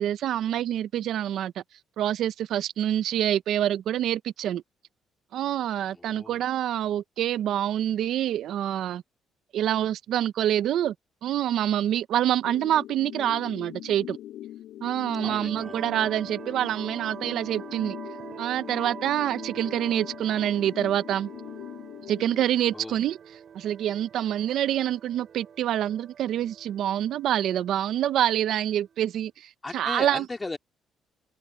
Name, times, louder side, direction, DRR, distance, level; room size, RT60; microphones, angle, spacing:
voice 1, 0.0-1.5 2.0-4.6 5.3-9.0 9.5-10.9 11.2-14.2 14.8-18.0 18.4-21.3 22.1-23.2 23.5-30.3, right 11 dB, 70° right, 0.6 m, -26 dB
voice 2, 5.9-6.4 15.2-15.8 22.7-23.0 29.6-30.6, left 3 dB, 15° left, 2.3 m, -37 dB
sound 1, 12.4-22.4, left 13 dB, 75° left, 7.7 m, -41 dB
sound 2, 15.1-29.2, right 7 dB, 45° right, 6.3 m, -45 dB
open air
cardioid pair, 140°, 0 cm